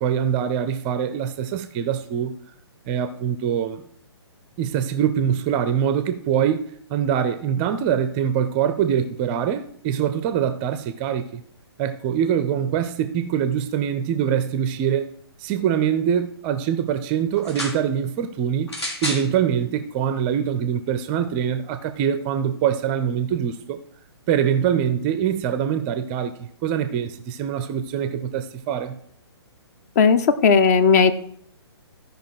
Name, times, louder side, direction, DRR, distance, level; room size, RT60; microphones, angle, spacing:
voice 1, 0.0-2.3 2.9-3.9 4.6-6.6 6.9-11.4 11.8-15.1 15.4-18.7 19.0-23.8 24.3-29.0, right 8 dB, 20° right, 0.5 m, -24 dB
sound 1, 17.4-17.8 18.7-19.3 20.2-20.3, left 1 dB, 70° left, 3.1 m, -30 dB
voice 2, 30.0-31.1, left 5 dB, 35° left, 0.8 m, -16 dB
14.0 x 5.2 x 4.6 m
figure-of-eight pair, 130°, 14 cm